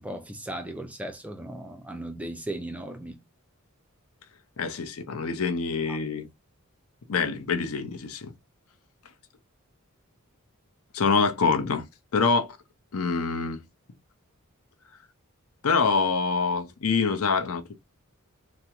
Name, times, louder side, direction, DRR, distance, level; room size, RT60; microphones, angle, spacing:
voice 1, 0.0-3.2 5.9-6.0, right 1 dB, 5° right, 0.3 m, -37 dB
voice 2, 4.6-6.3 7.1-8.3 10.9-11.8 12.1-12.5 12.9-13.6 15.6-17.8, left 4 dB, 75° left, 0.6 m, -25 dB
3.5 x 2.0 x 2.9 m
head